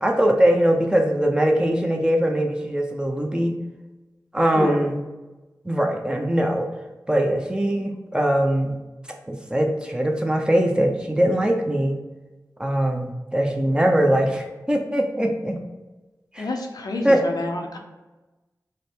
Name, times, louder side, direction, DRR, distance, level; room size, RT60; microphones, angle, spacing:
voice 1, 0.0-3.6 4.3-5.0 5.6-6.7 7.1-8.8 9.3-12.0 12.6-15.6 16.3-16.5 17.0-17.2, right 1 dB, 10° right, 2 dB, 0.6 m, -21 dB
voice 2, 16.4-17.8, left 2 dB, 75° left, 2 dB, 0.6 m, -28 dB
5.0 x 2.1 x 4.3 m, 1.1 s
wide cardioid pair, 60°, 7 cm